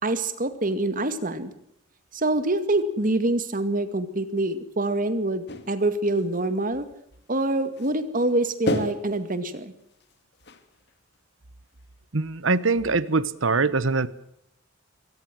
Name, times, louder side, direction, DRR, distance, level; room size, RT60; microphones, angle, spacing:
voice 1, 0.0-1.5 2.1-6.9 7.3-9.7, right 2 dB, 45° right, 11 dB, 2.2 m, -25 dB
sound 1, 5.5-5.8 6.2-6.6 7.1-7.2 7.5-8.0 8.7-11.2, left 1 dB, 60° left, 2.4 m, -32 dB
voice 2, 12.1-14.1, right 3 dB, 80° right, 18 dB, 1.1 m, -23 dB
23.5 x 18.0 x 7.8 m, 0.74 s
head